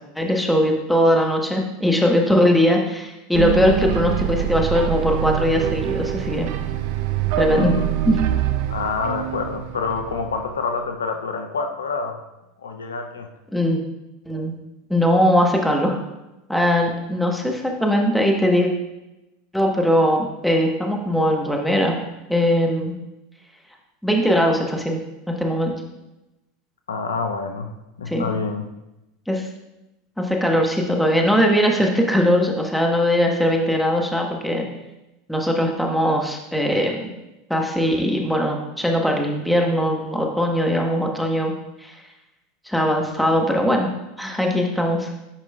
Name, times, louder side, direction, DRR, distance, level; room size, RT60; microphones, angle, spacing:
voice 1, 0.2-6.5 7.4-7.8 8.0-8.2 13.5-13.8 14.3-14.5 14.9-16.0 16.5-18.7 19.5-21.9 22.3-22.9 24.0-25.0 25.3-25.7 28.1-28.3 29.3-29.5 30.2-34.7 35.3-37.1 37.5-41.5 41.8-41.9 42.7-43.9 44.2-45.1, equal, 5° left, 1 dB, 1.1 m, -20 dB
sound 1, 3.3-10.6, right 11 dB, 60° right, 0.4 m, -25 dB
voice 2, 7.4-7.9 8.7-12.2 12.6-13.3 26.9-27.7 28.0-28.6, left 4 dB, 85° left, 5 dB, 0.5 m, -27 dB
9.8 x 4.8 x 2.3 m, 0.97 s
hypercardioid pair, 85°, 0 cm